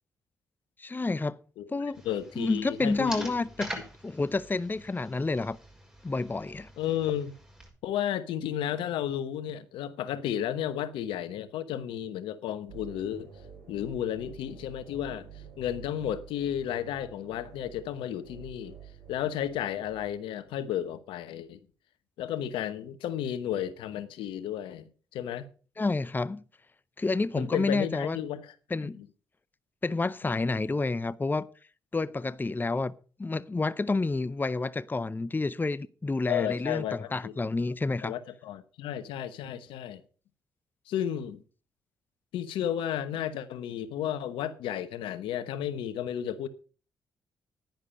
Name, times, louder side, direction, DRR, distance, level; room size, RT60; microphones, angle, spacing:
voice 1, 0.8-1.4 1.7-2.0 2.4-3.7 4.0-5.6 6.0-6.7 25.8-26.4 27.0-28.2 28.7-29.0 29.8-31.5 31.9-32.9 33.2-38.1, left 3 dB, 20° left, 0.6 m, -29 dB
sound 1, 1.9-7.7, equal, 10° right, 6.4 m, -45 dB
voice 2, 2.0-3.3 6.8-7.3 7.8-13.3 13.7-15.3 15.6-18.8 19.1-21.6 22.2-24.9 25.1-25.5 27.4-28.5 28.8-29.1 36.3-37.3 38.0-40.0 40.9-41.4 42.3-46.5, left 10 dB, 80° left, 1.0 m, -33 dB
sound 2, 12.7-20.8, right 7 dB, 90° right, 6.1 m, -49 dB
10.5 x 10.5 x 5.5 m
hypercardioid pair, 45°, 9 cm